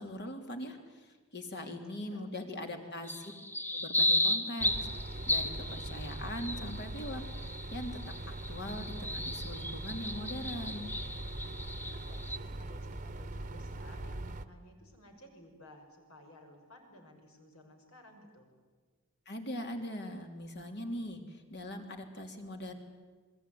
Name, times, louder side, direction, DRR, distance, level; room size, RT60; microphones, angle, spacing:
voice 1, 0.0-3.3 3.7-8.0 8.5-10.9 19.2-22.7, left 1 dB, 50° left, 4 dB, 3.4 m, -41 dB
voice 2, 1.9-2.9 11.8-18.5, left 1 dB, 70° left, 4 dB, 6.0 m, -56 dB
sound 1, 3.1-12.4, left 1 dB, 10° left, 1.1 m, -35 dB
sound 2, 4.6-14.5, right 2 dB, 35° right, 1.2 m, -42 dB
28.0 x 21.5 x 9.5 m, 1.4 s
head